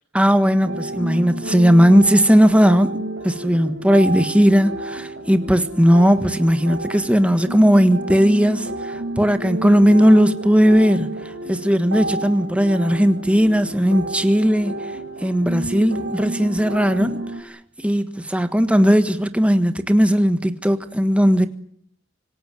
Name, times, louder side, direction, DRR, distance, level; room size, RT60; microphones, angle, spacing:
voice 1, 0.1-2.9 3.2-14.7 15.2-21.5, equal, 5° right, 1.4 m, -17 dB
sound 1, 0.6-17.4, right 1 dB, 80° right, 5.0 m, -30 dB
26.0 x 17.5 x 9.3 m
head